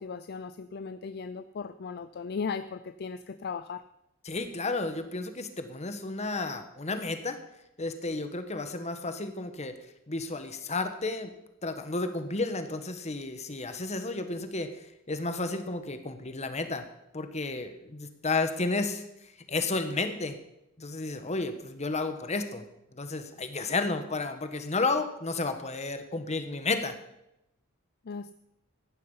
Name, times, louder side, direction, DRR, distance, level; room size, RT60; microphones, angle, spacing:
voice 1, 0.0-3.8 28.1-28.3, left 5 dB, 50° left, 12 dB, 0.5 m, -37 dB
voice 2, 4.2-7.4 7.8-9.7 10.1-11.3 11.6-14.7 15.1-16.8 17.1-19.0 19.5-20.4 20.8-22.6 22.9-27.0, left 3 dB, 35° left, 8 dB, 1.4 m, -32 dB
15.0 x 10.5 x 5.6 m, 0.86 s
head